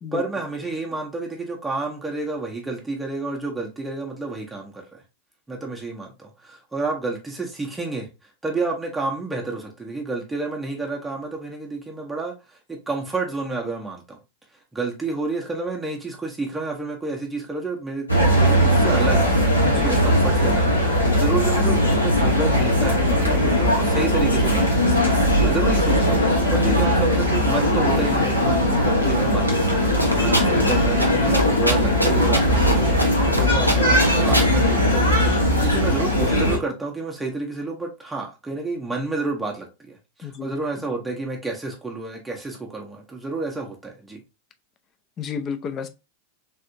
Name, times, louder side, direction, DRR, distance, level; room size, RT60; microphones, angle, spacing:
voice 1, 0.1-5.0 5.5-8.1 8.4-14.2 14.7-18.1 18.3-24.6 25.4-29.6 30.0-44.2, right 3 dB, 10° right, 0.6 m, -30 dB
sound 1, 18.1-36.6, equal, 90° left, 1.0 m, -19 dB
voice 2, 19.6-20.1 40.2-40.5 45.2-45.9, left 6 dB, 30° left, 0.4 m, -31 dB
sound 2, 30.0-30.7 31.0-31.1 31.3-32.7 33.0-33.4 33.7-34.5, equal, 90° right, 0.6 m, -22 dB
3.4 x 2.6 x 2.5 m
figure-of-eight pair, 90°, 0 cm